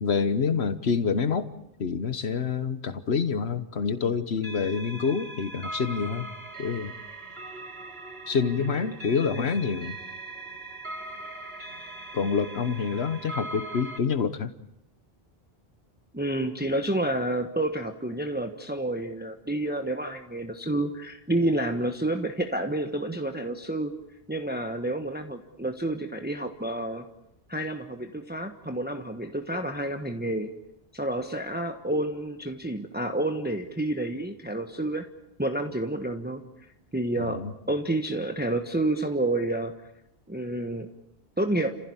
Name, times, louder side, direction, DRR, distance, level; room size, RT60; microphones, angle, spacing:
voice 1, 0.0-1.5 1.8-6.3 6.6-6.9 8.3-10.0 12.1-14.5 37.2-37.5, left 5 dB, 75° left, 12 dB, 1.4 m, -27 dB
sound 1, 4.4-14.0, right 2 dB, 70° right, 3.1 m, -40 dB
voice 2, 16.1-23.9 24.3-27.1 27.5-30.5 30.9-35.1 35.4-36.4 36.9-37.4 37.7-39.9 40.3-40.9 41.4-41.8, right 1 dB, 10° right, 6 dB, 1.3 m, -29 dB
29.5 x 16.0 x 9.9 m, 0.82 s
omnidirectional pair, 1.1 m